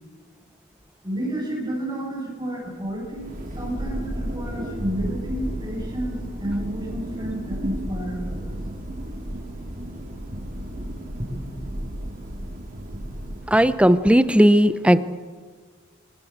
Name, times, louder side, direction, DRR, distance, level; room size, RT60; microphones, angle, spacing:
voice 1, 1.0-8.5 11.2-11.3, right 1 dB, 20° right, -6 dB, 6.8 m, -30 dB
Thunder, 2.8-13.9, right 1 dB, 45° right, 5.0 m, -33 dB
voice 2, 13.5-15.0, equal, 5° right, 12 dB, 0.8 m, -16 dB
26.5 x 19.5 x 7.3 m, 1.5 s
head